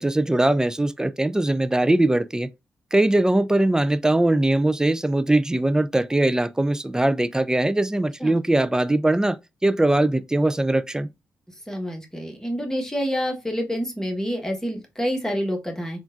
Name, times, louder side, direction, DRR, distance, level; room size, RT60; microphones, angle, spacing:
voice 1, 0.0-2.5 2.9-9.4 9.6-11.1, right 1 dB, 10° right, 0.3 m, -21 dB
voice 2, 11.7-16.0, equal, 10° left, 1.2 m, -27 dB
3.6 x 2.4 x 2.4 m
supercardioid pair, 45°, 7 cm